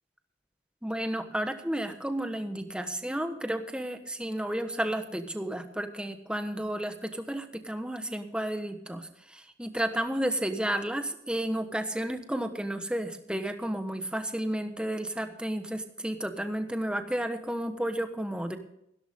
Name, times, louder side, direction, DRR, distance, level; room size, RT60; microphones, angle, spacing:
voice 1, 0.8-18.6, right 1 dB, 5° right, 7 dB, 1.3 m, -32 dB
16.0 x 13.0 x 3.7 m, 0.77 s
head